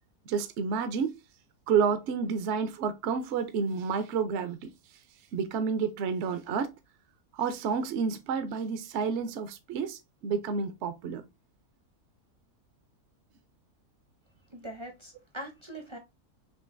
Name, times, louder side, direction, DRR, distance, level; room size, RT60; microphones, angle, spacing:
voice 1, 0.3-1.2 1.7-4.7 5.3-6.7 7.3-11.2, right 6 dB, 60° right, 0.8 m, -30 dB
voice 2, 14.5-16.0, right 1 dB, 30° right, 0.6 m, -42 dB
6.2 x 2.5 x 2.5 m
omnidirectional pair, 1.6 m